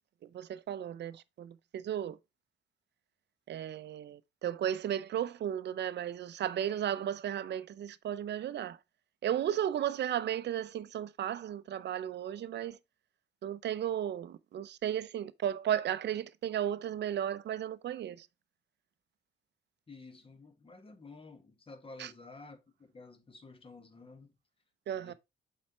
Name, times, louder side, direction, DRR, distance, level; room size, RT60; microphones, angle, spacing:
voice 1, 0.3-2.2 3.5-8.8 9.2-12.8 13.4-18.3 22.0-22.1 24.9-25.1, right 10 dB, 60° right, 0.6 m, -34 dB
voice 2, 19.9-24.3 24.9-25.1, left 3 dB, 25° left, 1.5 m, -52 dB
7.3 x 4.2 x 4.4 m
cardioid pair, 90°, 20 cm